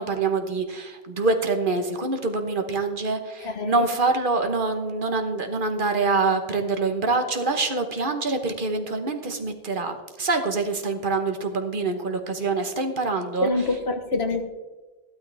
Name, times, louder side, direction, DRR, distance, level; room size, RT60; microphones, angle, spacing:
voice 1, 0.0-13.7, right 3 dB, 55° right, 6 dB, 1.3 m, -25 dB
voice 2, 3.4-3.8 13.4-14.4, left 3 dB, 85° left, 6 dB, 1.6 m, -25 dB
15.0 x 12.0 x 3.5 m, 1.2 s
omnidirectional pair, 1.0 m